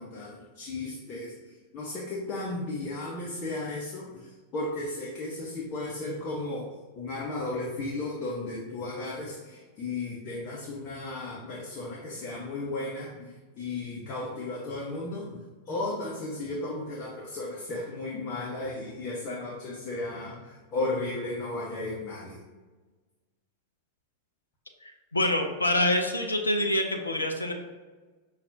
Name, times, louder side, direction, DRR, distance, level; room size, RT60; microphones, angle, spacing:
voice 1, 0.0-6.7 7.0-22.4, left 2 dB, 35° left, -4 dB, 0.7 m, -35 dB
voice 2, 24.8-27.5, left 1 dB, 80° left, 4 dB, 0.4 m, -26 dB
5.7 x 2.4 x 2.6 m, 1.3 s
figure-of-eight pair, 90°, 0 cm